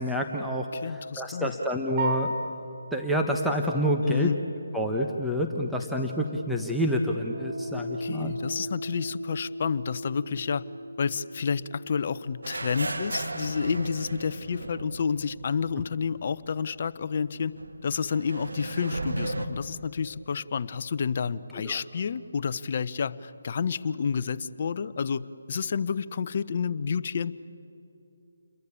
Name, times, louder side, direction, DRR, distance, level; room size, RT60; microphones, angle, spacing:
voice 1, 0.0-2.3 2.9-4.3 4.7-8.3 21.6-21.8, equal, ahead, -1 dB, 1.2 m, -28 dB
voice 2, 0.7-1.5 4.0-4.4 8.0-10.6 11.0-17.5 17.8-27.3, left 6 dB, 45° left, 14 dB, 0.9 m, -30 dB
sound 1, 2.0-3.0, right 1 dB, 35° right, 4.3 m, -31 dB
Piano, 7.3-14.6, equal, 55° right, 6.5 m, -39 dB
sound 2, 12.4-16.2 16.5-16.6 17.6-19.5, right 2 dB, 85° right, 2.4 m, -35 dB
29.0 x 22.5 x 8.4 m, 2.9 s
figure-of-eight pair, 160°, 0 cm